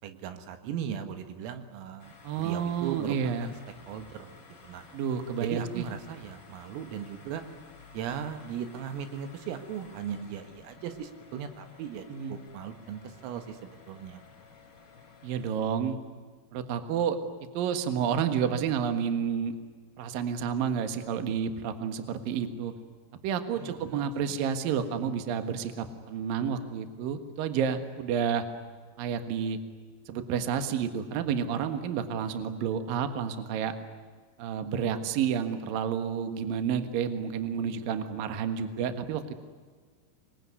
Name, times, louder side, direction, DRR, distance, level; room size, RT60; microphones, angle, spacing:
voice 1, 0.0-3.2 3.4-3.5 3.9-4.4 4.6-4.8 5.4-7.4 7.9-14.2 23.6-24.4, right 8 dB, 80° right, 8 dB, 4.2 m, -38 dB
sound 1, 2.0-15.5, left 4 dB, 30° left, 3.4 m, -53 dB
voice 2, 2.2-3.5 4.9-5.9 12.1-12.4 15.2-16.0 16.5-17.2 17.5-19.5 20.0-22.7 23.2-28.4 29.0-29.6 30.1-33.7 34.4-39.3, right 7 dB, 60° right, 8 dB, 2.5 m, -30 dB
26.0 x 22.0 x 9.6 m, 1.5 s
omnidirectional pair, 6.0 m